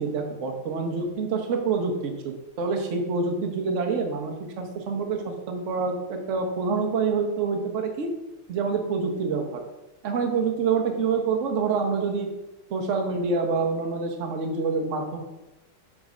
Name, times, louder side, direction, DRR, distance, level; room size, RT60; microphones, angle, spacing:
voice 1, 0.0-8.1 8.5-9.6 10.0-12.3 12.7-15.2, right 4 dB, 50° right, 3 dB, 1.0 m, -27 dB
7.8 x 3.7 x 5.1 m, 0.99 s
omnidirectional pair, 2.3 m